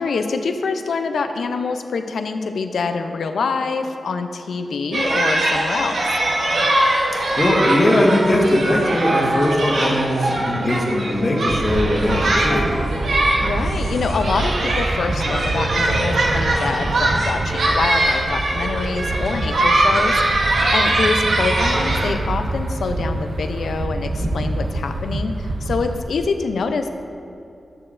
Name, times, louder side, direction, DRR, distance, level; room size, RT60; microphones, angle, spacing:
voice 1, 0.0-6.0 13.4-20.2 20.7-26.9, left 4 dB, 85° left, 7 dB, 0.4 m, -25 dB
sound 1, 4.9-22.1, right 1 dB, 75° right, 0.9 m, -21 dB
voice 2, 7.1-12.7, left 1 dB, 45° left, -1 dB, 1.3 m, -19 dB
sound 2, 11.5-26.0, right 2 dB, 60° right, 0.5 m, -26 dB
9.5 x 6.6 x 2.5 m, 2.6 s
cardioid pair, 55°, 0 cm